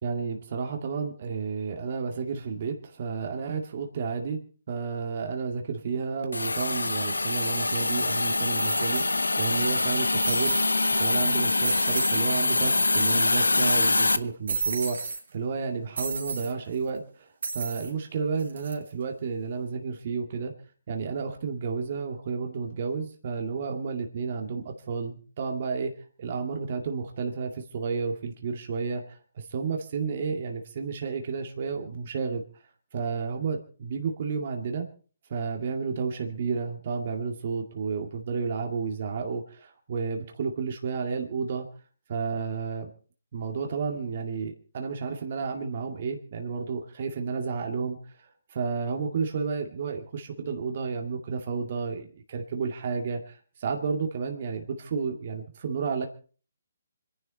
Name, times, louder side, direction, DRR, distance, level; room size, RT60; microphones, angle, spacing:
voice 1, 0.0-4.4 4.7-10.6 11.0-20.5 20.9-25.9 26.2-32.4 32.9-34.9 35.3-41.7 42.1-42.9 43.3-56.1, right 5 dB, 50° right, 3 dB, 2.2 m, -31 dB
Hiss, 6.3-14.2, left 2 dB, 90° left, 0.9 m, -24 dB
sound 1, 7.8-7.9 8.6-9.5 9.7-9.8 10.2-10.7 11.2-11.3 11.6-12.2 12.5-12.6 12.8-13.6 14.5-15.2 16.0-16.5 17.4-17.9 18.4-18.7, right 4 dB, 70° right, 3.8 m, -33 dB
26.5 x 11.0 x 4.2 m, 0.40 s
figure-of-eight pair, 140°, 0 cm